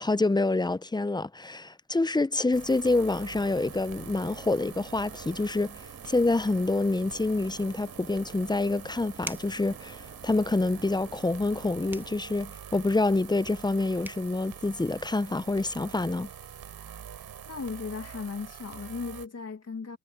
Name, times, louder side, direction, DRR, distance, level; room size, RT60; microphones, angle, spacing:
voice 1, 0.0-16.3, left 2 dB, 10° left, 0.6 m, -27 dB
sound 1, 2.5-19.3, right 8 dB, 75° right, 5.4 m, -45 dB
sound 2, 3.3-12.1, right 4 dB, 35° right, 1.8 m, -51 dB
sound 3, 9.2-9.6 11.9-12.2 13.7-13.8 14.0-14.3, right 1 dB, 5° right, 1.2 m, -40 dB
voice 2, 17.5-20.0, left 4 dB, 45° left, 2.2 m, -36 dB
supercardioid pair, 45°, 36 cm